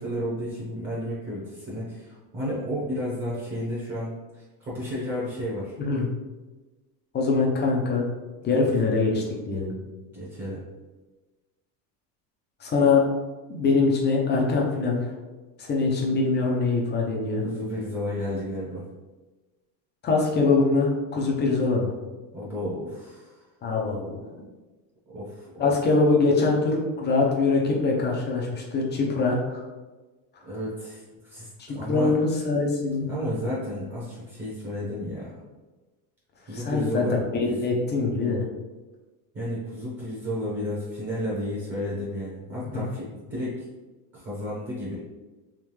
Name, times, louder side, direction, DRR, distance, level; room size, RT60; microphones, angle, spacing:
voice 1, 0.0-5.7 8.4-8.9 10.1-10.7 17.4-18.9 22.3-23.4 25.1-25.7 30.4-32.2 33.1-35.3 36.5-37.2 37.5-37.6 39.3-43.6 44.1-45.0, equal, 25° right, -7 dB, 1.0 m, -32 dB
voice 2, 7.1-8.1 8.4-9.7 12.6-13.0 13.5-15.1 15.6-17.4 20.0-21.9 23.6-24.2 25.6-29.6 31.6-33.1 36.5-38.4 42.7-42.8, left 3 dB, 20° left, -1 dB, 0.5 m, -23 dB
3.6 x 3.1 x 3.1 m, 1.2 s
cardioid pair, 155°, 48 cm